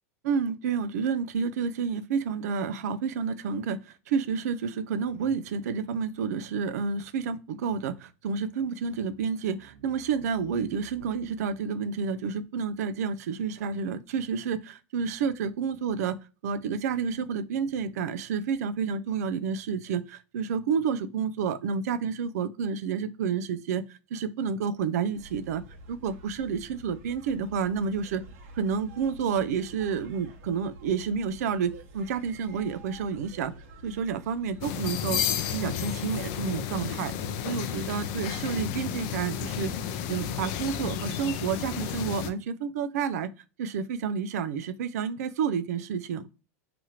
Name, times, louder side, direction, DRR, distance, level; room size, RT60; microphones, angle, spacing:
voice 1, 0.2-16.2 16.4-25.6 25.9-28.2 28.6-33.5 33.8-35.2 35.5-37.1 37.4-39.7 40.1-43.3 43.6-46.4, right 6 dB, 80° right, 0.4 m, -30 dB
sound 1, 25.1-42.1, right 1 dB, 65° right, 0.9 m, -49 dB
sound 2, 34.6-42.3, left 9 dB, 55° left, 0.4 m, -32 dB
2.8 x 2.4 x 2.8 m
supercardioid pair, 130°, 8 cm